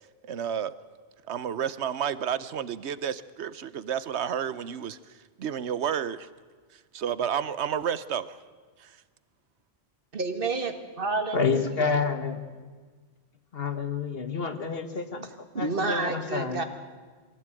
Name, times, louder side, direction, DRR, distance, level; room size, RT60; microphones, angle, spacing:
voice 1, 0.2-0.7 1.3-5.0 5.4-6.3 6.9-8.4 8.8-8.9, right 8 dB, 85° right, 16 dB, 1.1 m, -30 dB
voice 2, 10.1-11.9 15.5-16.6, right 3 dB, 55° right, 7 dB, 2.0 m, -30 dB
voice 3, 11.3-12.4 13.5-15.3 15.6-16.6, left 5 dB, 60° left, 8 dB, 1.8 m, -28 dB
23.0 x 16.0 x 9.0 m, 1.5 s
omnidirectional pair, 1.1 m